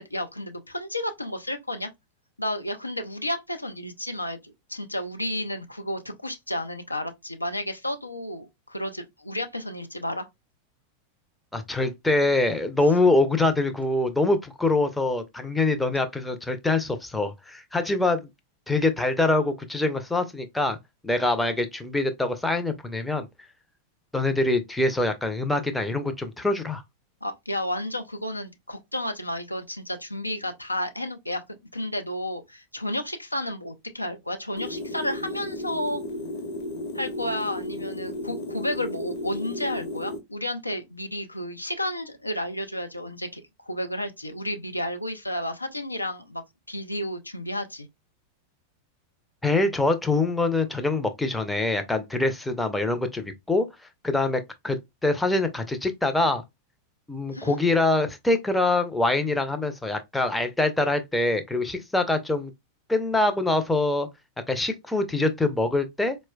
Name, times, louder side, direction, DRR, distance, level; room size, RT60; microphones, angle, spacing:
voice 1, 0.0-1.9 2.4-10.3 27.2-36.0 36.9-46.4 46.7-47.9 57.3-57.6, left 1 dB, 85° left, 0.5 m, -32 dB
voice 2, 11.5-18.2 18.7-20.8 21.0-23.3 24.1-26.8 49.4-53.7 54.0-56.4 57.1-62.5 62.9-64.1 64.5-66.2, left 2 dB, 5° left, 0.5 m, -24 dB
sound 1, 34.6-40.2, left 1 dB, 50° left, 0.8 m, -34 dB
4.2 x 2.1 x 2.2 m
figure-of-eight pair, 90°, 0 cm